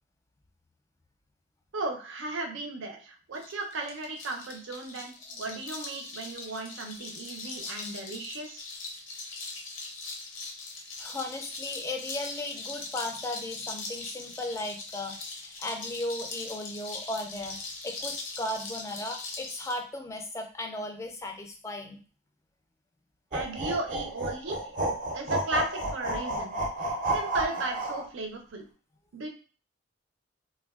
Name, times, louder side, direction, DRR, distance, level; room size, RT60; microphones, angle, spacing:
voice 1, 1.7-8.6 23.3-24.6 25.1-26.6 27.1-28.7 29.1-29.3, right 2 dB, 90° right, 3 dB, 0.6 m, -35 dB
sound 1, 3.3-19.8, left 3 dB, 85° left, 0.6 m, -40 dB
voice 2, 11.0-22.0, left 1 dB, 15° left, 3 dB, 0.3 m, -36 dB
sound 2, 23.3-28.1, right 1 dB, 40° right, 0.5 m, -31 dB
3.3 x 2.2 x 2.3 m, 0.38 s
head